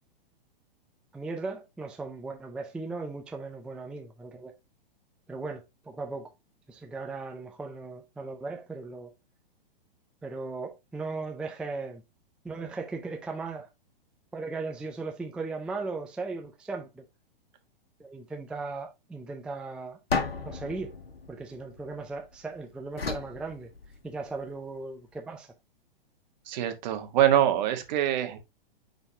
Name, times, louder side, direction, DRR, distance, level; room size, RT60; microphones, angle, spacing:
voice 1, 1.1-4.5 5.3-6.3 6.7-9.1 10.2-12.0 12.4-13.7 14.3-17.0 18.0-20.0 20.4-20.9 21.3-23.7 24.0-25.5, right 3 dB, 5° right, 0.4 m, -37 dB
sound 1, 20.1-22.3 23.0-24.3, left 4 dB, 85° left, 1.3 m, -34 dB
voice 2, 26.5-28.4, right 11 dB, 50° right, 1.4 m, -24 dB
9.6 x 4.0 x 2.7 m
hypercardioid pair, 115°, 29 cm